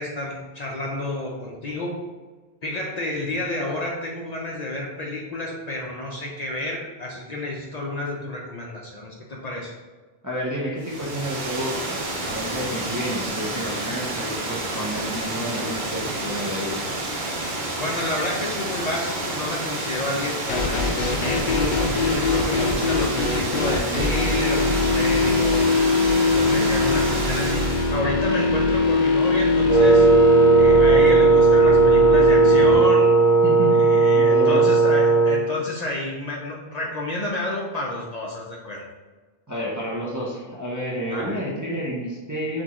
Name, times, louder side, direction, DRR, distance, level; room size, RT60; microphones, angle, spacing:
voice 1, 0.0-2.0 2.6-9.7 17.7-25.7 26.3-27.6 27.9-30.1 30.5-33.2 33.7-38.8 41.1-41.4, left 2 dB, 50° left, -2 dB, 0.6 m, -30 dB
voice 2, 10.2-12.0 12.2-16.8 33.4-34.7 39.5-42.6, equal, 25° right, -5 dB, 0.5 m, -30 dB
Water, 10.8-28.0, right 2 dB, 55° right, 0.8 m, -30 dB
sound 1, 20.5-32.7, left 3 dB, 85° left, 0.9 m, -22 dB
Wind instrument woodwind instrument, 29.7-35.5, right 3 dB, 85° right, 1.1 m, -16 dB
6.0 x 2.3 x 2.9 m, 1.3 s
omnidirectional pair, 1.1 m